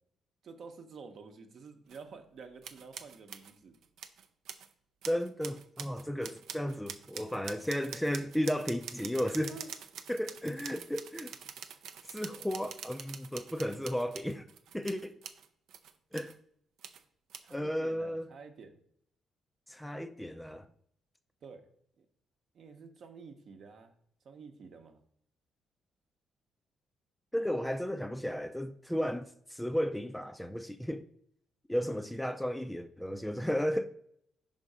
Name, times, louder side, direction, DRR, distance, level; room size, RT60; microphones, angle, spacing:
voice 1, 0.4-3.8 9.5-9.7 17.4-18.8 21.4-21.7 22.0-22.1 22.5-23.9 24.2-25.0 31.8-32.1, right 5 dB, 60° right, 0.8 m, -50 dB
sound 1, 1.9-2.0 2.6-4.7 5.0-16.3 16.8-17.0 17.3-17.6, right 8 dB, 80° right, 0.4 m, -46 dB
voice 2, 5.1-9.6 10.1-11.3 12.1-14.5 14.7-15.2 16.1-16.3 17.5-18.3 19.7-20.7 27.3-31.0 31.7-33.8, equal, 5° left, 0.3 m, -34 dB
5.4 x 3.7 x 4.9 m
cardioid pair, 90°, 0 cm